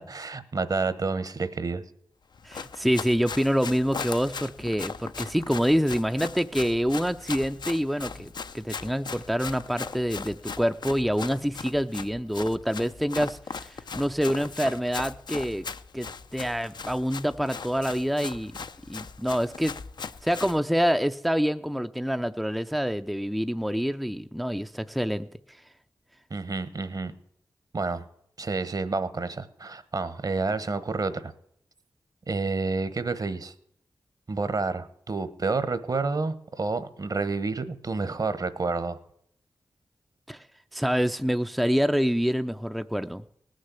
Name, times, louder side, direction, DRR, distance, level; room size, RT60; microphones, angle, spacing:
voice 1, 0.0-1.8 26.3-27.1 27.7-28.0 28.4-31.3 32.3-33.5 34.3-39.0, right 3 dB, 50° right, 13 dB, 1.1 m, -29 dB
Run, 2.3-20.6, left 5 dB, 65° left, 0.6 m, -39 dB
voice 2, 2.4-15.7 15.9-18.5 18.9-25.6 40.3-40.5 40.7-43.2, equal, ahead, 8 dB, 0.5 m, -27 dB
18.5 x 6.5 x 8.2 m, 0.70 s
cardioid pair, 55°, 8 cm